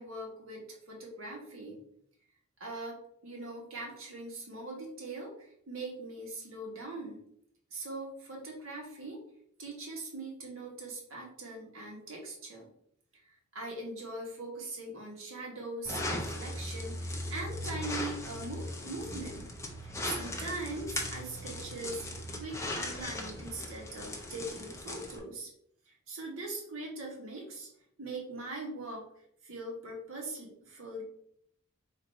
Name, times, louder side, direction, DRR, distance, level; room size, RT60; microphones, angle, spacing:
voice 1, 0.0-1.8 2.6-7.2 7.7-9.2 9.6-12.7 13.1-19.5 19.8-22.1 22.4-25.5 25.9-27.7 28.0-29.1 29.4-31.0, right 2 dB, 70° right, -1 dB, 1.4 m, -41 dB
sound 1, 15.9-25.2, left 1 dB, 15° left, 0.5 m, -38 dB
3.9 x 2.6 x 4.4 m, 0.69 s
head